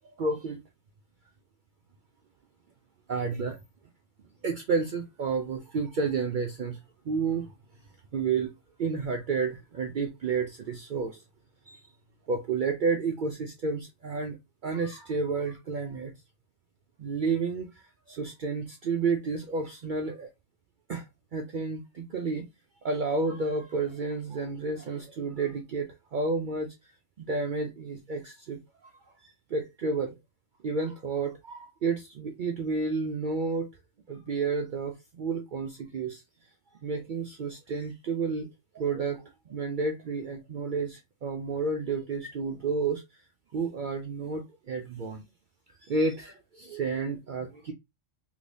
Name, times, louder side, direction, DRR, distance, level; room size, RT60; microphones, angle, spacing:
voice 1, 0.2-0.6 3.1-3.6 4.4-6.8 7.1-7.5 8.1-8.5 8.8-11.2 11.7-11.8 12.3-14.4 14.6-16.1 17.0-17.7 18.1-20.3 20.9-21.0 21.3-22.5 22.8-26.7 27.2-28.6 29.5-30.1 30.6-33.7 34.1-36.2 36.8-38.5 38.7-43.0 43.5-45.2 45.8-47.7, right 4 dB, 65° right, 0.5 m, -31 dB
3.3 x 2.9 x 2.6 m
omnidirectional pair, 1.3 m